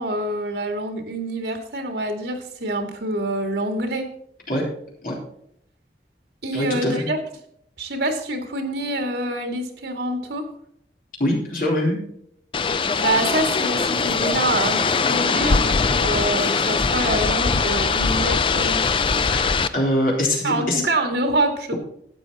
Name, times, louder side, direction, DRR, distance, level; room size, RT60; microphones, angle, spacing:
voice 1, 0.0-4.1 6.4-7.2 7.8-10.5 13.0-18.8 20.4-21.7, right 1 dB, 80° right, 4 dB, 2.1 m, -26 dB
voice 2, 6.5-7.1 11.2-12.0 19.3-20.8, left 1 dB, 50° left, -2 dB, 3.9 m, -23 dB
sound 1, 12.5-19.7, left 4 dB, 30° left, 0.4 m, -21 dB
12.5 x 8.5 x 4.2 m, 0.70 s
head